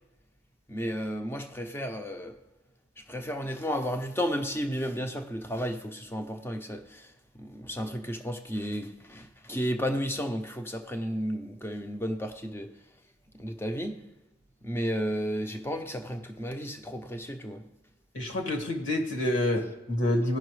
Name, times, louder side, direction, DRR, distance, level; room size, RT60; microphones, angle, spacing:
voice 1, 0.7-2.4 3.1-12.7 13.3-14.0 14.6-17.6, equal, 10° left, 0.7 m, -33 dB
voice 2, 18.1-20.4, left 1 dB, 65° left, 1.7 m, -28 dB
16.5 x 5.7 x 3.2 m
head